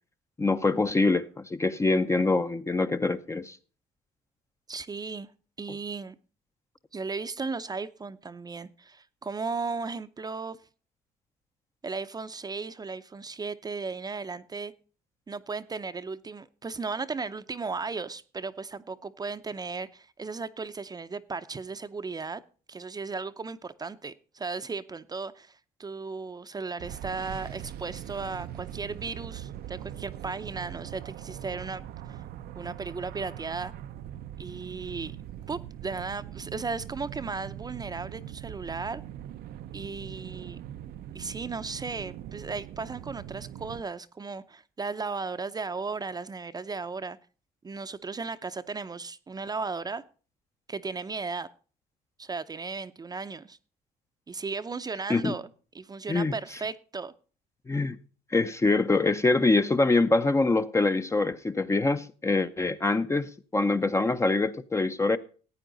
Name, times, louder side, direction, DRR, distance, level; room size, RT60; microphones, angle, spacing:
voice 1, 0.4-3.6 55.1-55.3 56.1-56.3 57.7-58.0 58.3-65.2, left 3 dB, 15° left, 0.7 m, -24 dB
voice 2, 4.7-5.3 5.6-6.2 6.9-10.6 11.8-14.7 15.3-22.4 22.7-31.8 32.1-32.2 32.5-33.7 34.4-35.2 35.5-39.0 39.7-40.6 41.1-47.2 47.6-50.0 50.7-51.5 52.2-53.6 54.3-55.5 55.7-57.1, right 4 dB, 25° right, 0.7 m, -36 dB
sound 1, 26.8-43.8, right 11 dB, 70° right, 0.6 m, -41 dB
15.0 x 9.0 x 3.9 m
cardioid pair, 110°, 17 cm